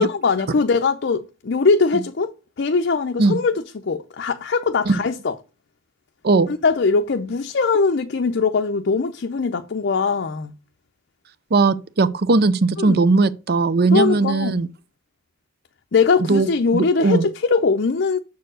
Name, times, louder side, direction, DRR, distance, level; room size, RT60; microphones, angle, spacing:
voice 1, 0.0-5.4 6.5-10.5 12.8-13.0 13.9-14.6 15.9-18.2, left 4 dB, 55° left, 0.5 m, -21 dB
voice 2, 11.5-14.7 16.3-17.2, right 3 dB, 50° right, 0.6 m, -18 dB
6.9 x 4.5 x 6.3 m
head